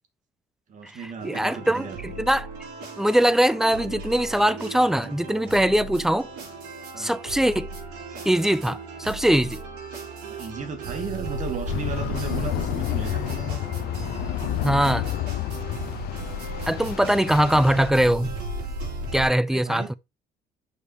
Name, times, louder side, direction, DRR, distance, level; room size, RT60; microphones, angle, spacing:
voice 1, 0.7-2.3 6.9-7.2 10.2-13.8 16.3-16.7 19.5-20.0, right 5 dB, 50° right, 2.0 m, -35 dB
voice 2, 1.2-2.5 3.0-6.3 7.0-7.7 8.3-9.6 14.6-15.1 16.7-18.3 19.1-19.9, right 1 dB, ahead, 0.4 m, -22 dB
sound 1, 1.2-19.3, right 2 dB, 85° right, 3.9 m, -36 dB
sound 2, 11.7-17.9, left 17 dB, 70° left, 0.5 m, -30 dB
6.4 x 5.2 x 2.8 m
cardioid pair, 110°, 17 cm